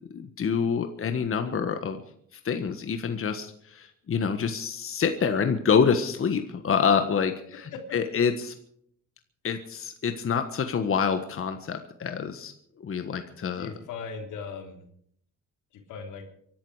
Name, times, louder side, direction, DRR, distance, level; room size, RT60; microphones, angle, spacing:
voice 1, 0.1-2.0 2.4-8.5 9.4-12.5 12.8-13.7, left 6 dB, 45° left, 7 dB, 1.5 m, -27 dB
voice 2, 13.5-14.8 15.7-16.2, left 5 dB, 90° left, 3 dB, 3.4 m, -38 dB
24.5 x 12.0 x 5.0 m, 0.67 s
cardioid pair, 90°, 30 cm